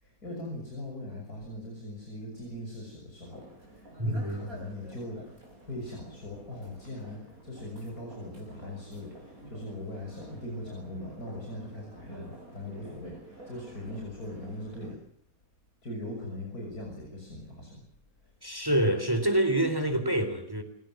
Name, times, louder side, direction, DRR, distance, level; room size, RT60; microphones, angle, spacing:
voice 1, 0.0-15.0 15.8-17.9 18.2-18.3, left 1 dB, 90° left, 7.2 m, -40 dB
sound 1, 3.2-14.9, right 1 dB, 70° right, 7.1 m, -49 dB
voice 2, 4.0-4.4 18.4-20.6, right 1 dB, 15° right, 3.6 m, -26 dB
29.5 x 17.0 x 7.7 m
omnidirectional pair, 1.6 m